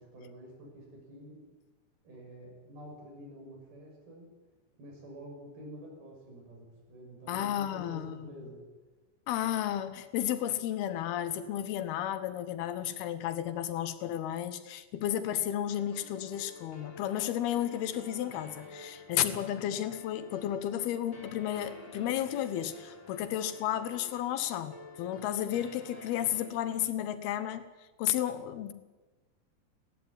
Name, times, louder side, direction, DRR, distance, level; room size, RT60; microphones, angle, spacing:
voice 1, 0.0-1.4 2.0-4.3 4.8-8.6, right 1 dB, 75° right, 0 dB, 8.6 m, -48 dB
voice 2, 7.3-8.3 9.3-27.7 28.0-28.7, left 11 dB, 80° left, 12 dB, 3.1 m, -33 dB
sound 1, 15.7-26.5, left 2 dB, 20° left, 5.0 m, -50 dB
18.0 x 17.0 x 9.8 m, 1.2 s
omnidirectional pair, 4.4 m